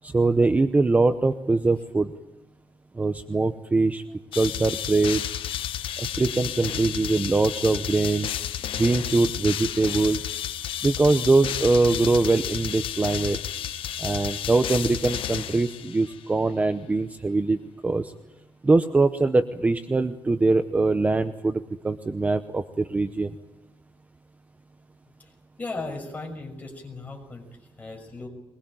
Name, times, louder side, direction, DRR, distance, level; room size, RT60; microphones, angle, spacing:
voice 1, 0.0-2.1 3.0-4.0 4.3-5.2 6.0-8.3 8.8-10.2 10.8-13.4 14.0-17.6 17.8-18.1 18.6-23.3, right 3 dB, 15° right, 10 dB, 0.8 m, -22 dB
sound 1, 4.3-16.2, left 10 dB, 85° left, 1.3 m, -32 dB
voice 2, 25.6-28.3, left 3 dB, 15° left, 2 dB, 6.0 m, -37 dB
22.5 x 21.5 x 8.9 m, 1.0 s
wide cardioid pair, 160°, 9 cm